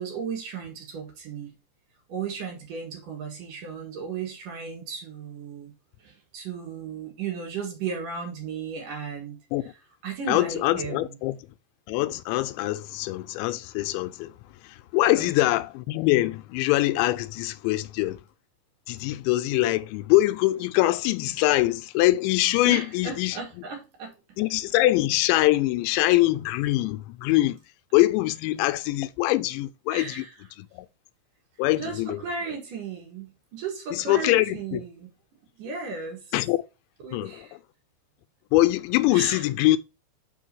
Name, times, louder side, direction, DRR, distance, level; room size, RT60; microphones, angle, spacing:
voice 1, 0.0-1.5 2.1-5.7 6.0-9.4 10.0-11.2 15.1-15.3 22.7-24.1 29.9-30.3 31.8-35.1 35.6-36.3 37.0-37.5 39.1-39.4, right 6 dB, 60° right, 2.7 m, -35 dB
voice 2, 10.3-11.4 11.9-18.2 18.9-23.4 24.4-27.6 27.9-30.3 30.6-30.9 31.6-32.2 33.9-34.8 36.3-36.6 37.1-37.6 38.5-39.8, left 17 dB, 90° left, 2.9 m, -23 dB
6.2 x 4.6 x 6.2 m
omnidirectional pair, 5.1 m